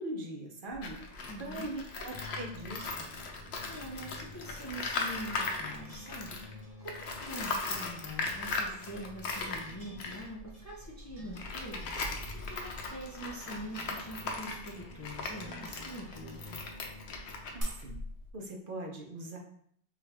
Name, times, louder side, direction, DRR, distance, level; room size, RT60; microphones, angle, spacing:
voice 1, 0.0-1.1 1.4-3.1 17.5-18.0 18.3-19.4, right 1 dB, 60° right, 1 dB, 0.9 m, -41 dB
Tools, 0.7-6.5 6.8-18.3, left 3 dB, 85° left, 0.9 m, -38 dB
sound 1, 1.2-17.6, left 2 dB, 35° right, 1.1 m, -52 dB
voice 2, 1.3-1.7 3.7-16.6, equal, 20° left, -3 dB, 0.5 m, -44 dB
4.7 x 2.5 x 3.3 m, 0.64 s
omnidirectional pair, 1.0 m